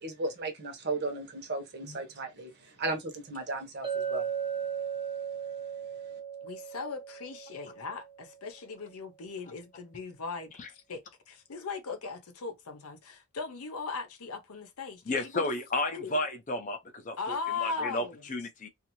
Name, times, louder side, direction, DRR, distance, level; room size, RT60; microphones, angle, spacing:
voice 1, 0.0-4.3, right 2 dB, 50° right, 0.9 m, -35 dB
Chink clink, 3.8-8.3, right 8 dB, 20° right, 0.5 m, -36 dB
voice 2, 6.4-15.5 15.9-16.2 17.2-18.2, left 4 dB, 75° left, 0.7 m, -38 dB
voice 3, 15.1-17.4 17.6-18.7, left 2 dB, 35° left, 0.5 m, -33 dB
2.6 x 2.4 x 2.9 m
head